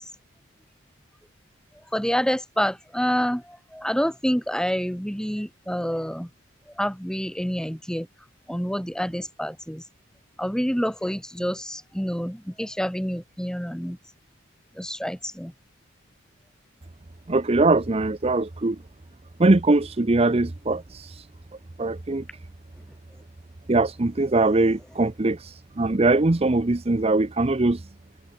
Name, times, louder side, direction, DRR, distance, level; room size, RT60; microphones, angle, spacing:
voice 1, 1.9-6.3 6.8-8.1 8.5-9.8 10.4-14.0 14.7-15.5, equal, 5° left, 3.6 m, -27 dB
voice 2, 17.3-18.8 19.4-21.3 21.8-22.2 23.7-27.8, right 2 dB, 30° right, 0.7 m, -21 dB
head